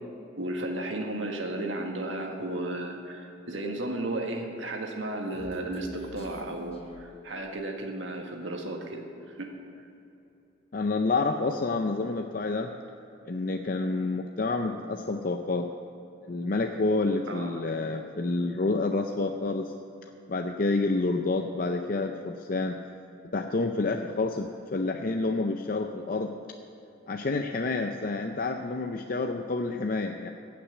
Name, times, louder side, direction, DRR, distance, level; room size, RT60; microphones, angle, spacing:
voice 1, 0.4-9.5 17.3-17.6, right 1 dB, 85° right, 2 dB, 1.6 m, -34 dB
Human voice, 4.9-7.7, equal, 30° left, 1.0 m, -48 dB
voice 2, 10.7-12.7 13.2-15.7 16.3-19.7 20.3-22.8 23.3-26.3 27.1-30.3, left 3 dB, 45° left, 4 dB, 0.5 m, -28 dB
16.0 x 6.0 x 8.4 m, 2.8 s
head